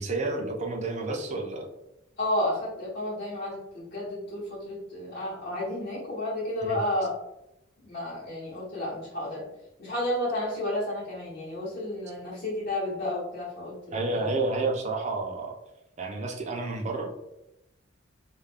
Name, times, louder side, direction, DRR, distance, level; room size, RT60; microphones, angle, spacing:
voice 1, 0.0-1.7 6.6-6.8 13.9-15.6 16.0-17.2, right 3 dB, 35° right, 2 dB, 0.5 m, -30 dB
voice 2, 2.2-7.1 7.8-9.5 9.8-14.3, left 1 dB, 55° left, -9 dB, 1.0 m, -31 dB
2.4 x 2.1 x 3.3 m, 0.88 s
head